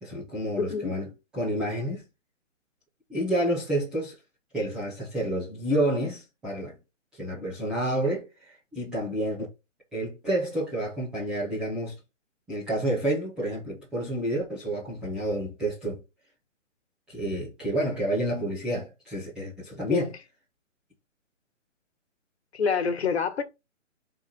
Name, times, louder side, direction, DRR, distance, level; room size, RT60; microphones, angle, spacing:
voice 1, 0.0-2.0 3.1-4.2 4.5-6.8 7.1-9.5 9.9-12.0 12.5-16.0 17.1-20.1, right 1 dB, ahead, 0.6 m, -29 dB
voice 2, 0.6-0.9 19.9-20.1 22.5-23.4, left 5 dB, 55° left, 1.6 m, -26 dB
4.8 x 4.1 x 5.7 m
hypercardioid pair, 160°, 38 cm